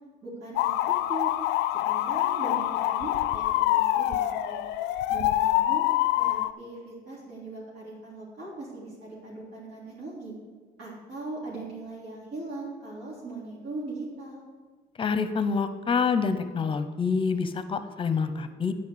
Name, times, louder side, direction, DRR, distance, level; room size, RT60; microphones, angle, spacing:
voice 1, 0.2-0.8 1.1-1.3 1.9-4.6 5.1-10.3 10.8-14.4, right 2 dB, 75° right, -7 dB, 3.3 m, -39 dB
sound 1, 0.6-6.5, left 14 dB, 90° left, 0.4 m, -25 dB
voice 2, 15.0-18.7, left 5 dB, 30° left, 11 dB, 0.8 m, -27 dB
9.3 x 5.6 x 8.0 m, 1.4 s
cardioid pair, 110°, 17 cm